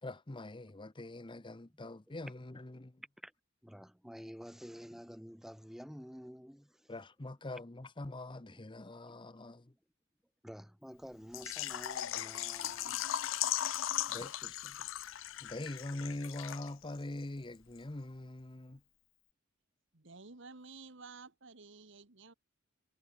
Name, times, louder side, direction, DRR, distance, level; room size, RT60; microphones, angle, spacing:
voice 1, 0.0-3.0 6.9-9.7 14.1-15.0 15.4-18.8, left 2 dB, 25° left, 0.9 m, -43 dB
voice 2, 3.0-3.3 3.6-6.9 9.1-9.2 10.4-13.8, equal, ahead, 2.5 m, -50 dB
Water / Liquid, 11.3-17.0 17.2-17.3 17.8-17.9, left 12 dB, 75° left, 0.6 m, -38 dB
voice 3, 19.9-22.3, right 4 dB, 65° right, 1.8 m, -52 dB
head